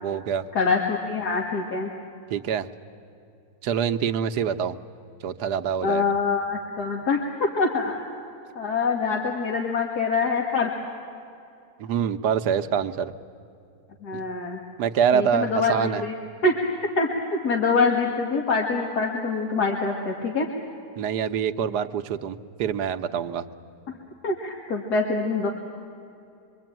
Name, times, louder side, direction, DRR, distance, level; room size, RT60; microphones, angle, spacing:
voice 1, 0.0-0.4 2.3-2.7 3.6-4.8 5.2-6.0 11.8-13.1 14.1-14.2 14.8-16.0 21.0-23.5, right 8 dB, 90° right, 10 dB, 1.4 m, -25 dB
voice 2, 0.5-1.9 5.8-8.0 8.6-10.7 14.0-14.6 15.1-16.1 16.4-16.6 17.0-20.5 23.9-24.0 24.2-25.5, left 4 dB, 75° left, 0 dB, 2.3 m, -25 dB
26.0 x 23.5 x 9.1 m, 2.6 s
omnidirectional pair, 1.7 m